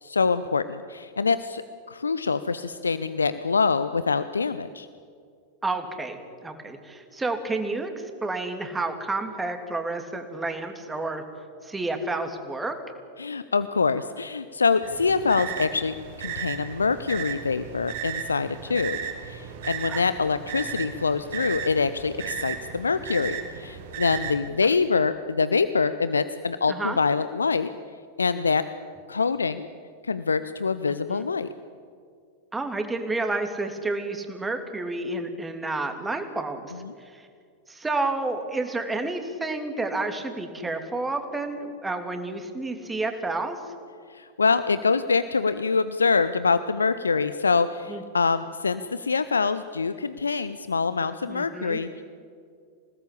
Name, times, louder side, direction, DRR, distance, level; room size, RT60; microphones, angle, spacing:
voice 1, 0.0-4.9 13.2-19.0 19.2-27.7 28.2-28.6 29.1-29.7 30.0-31.5 36.7-36.9 44.1-52.0, left 4 dB, 75° left, 13 dB, 0.7 m, -25 dB
voice 2, 5.6-11.2 11.6-12.8 19.9-20.0 26.7-27.0 30.9-31.2 32.5-36.7 37.1-37.2 37.7-43.6 47.9-48.0 51.3-51.8, right 2 dB, 10° right, 5 dB, 3.1 m, -30 dB
sound 1, 14.8-24.4, right 9 dB, 60° right, 5.2 m, -35 dB
28.0 x 18.5 x 8.6 m, 2.3 s
figure-of-eight pair, 90°, 0 cm